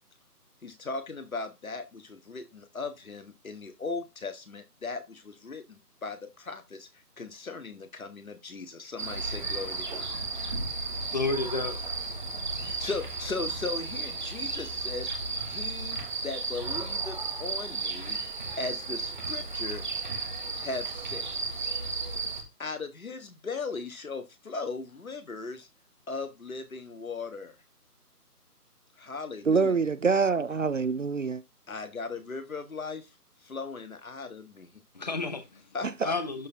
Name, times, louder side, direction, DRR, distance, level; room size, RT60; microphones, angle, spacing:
voice 1, 0.6-6.9 7.2-10.1 12.6-15.1 15.5-18.2 18.6-19.8 20.6-21.3 22.6-25.7 26.1-27.6 29.0-29.7 31.7-33.1 33.4-34.7 35.7-36.1, left 4 dB, 60° left, 1.7 m, -38 dB
sound 1, 9.0-22.4, right 3 dB, 30° right, 1.2 m, -34 dB
voice 2, 10.9-11.8 34.9-35.6 36.0-36.5, left 3 dB, 25° left, 0.9 m, -31 dB
voice 3, 29.5-31.4 36.0-36.1, right 5 dB, 55° right, 0.5 m, -25 dB
12.0 x 4.7 x 2.9 m
figure-of-eight pair, 155°, 47 cm